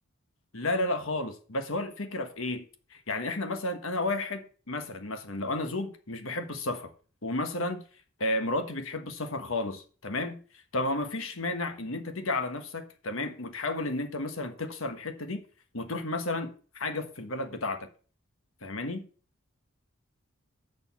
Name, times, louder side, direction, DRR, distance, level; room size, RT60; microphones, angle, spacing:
voice 1, 0.5-2.6 2.9-6.9 7.2-7.8 8.2-10.4 10.7-15.4 15.7-17.9 18.6-19.0, left 2 dB, 65° left, 1.4 m, -32 dB
6.7 x 6.6 x 7.2 m
head